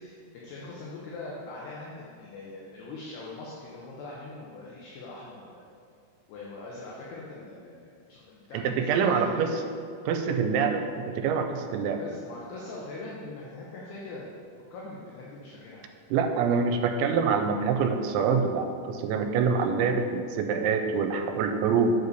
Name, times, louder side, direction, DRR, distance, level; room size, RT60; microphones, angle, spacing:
voice 1, 0.0-5.6 6.3-9.5 12.0-14.3 14.7-15.8, left 2 dB, 75° left, -4 dB, 2.7 m, -42 dB
voice 2, 8.5-9.5 10.1-12.0 16.1-21.9, right 5 dB, 85° right, 6 dB, 2.9 m, -25 dB
8.3 x 6.6 x 4.0 m, 2.3 s
omnidirectional pair, 5.3 m